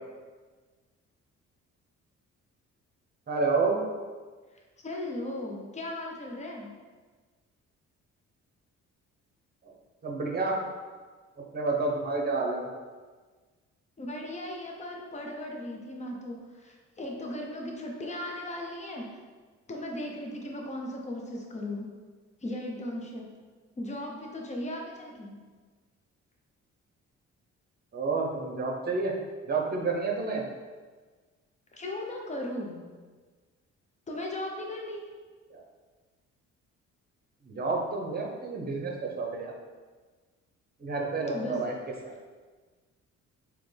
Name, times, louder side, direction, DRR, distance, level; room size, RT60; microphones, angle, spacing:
voice 1, 3.3-3.8 10.0-10.6 11.5-12.6 27.9-29.1 29.5-30.4 37.5-39.5 40.8-41.7, right 3 dB, 30° right, 0 dB, 0.8 m, -29 dB
voice 2, 4.8-6.7 14.0-19.1 19.7-21.9 22.4-23.3 23.8-25.4 31.7-32.8 34.1-35.0 41.3-41.7, left 1 dB, 25° left, 0 dB, 0.8 m, -37 dB
3.9 x 3.0 x 3.3 m, 1.4 s
cardioid pair, 90°, 30 cm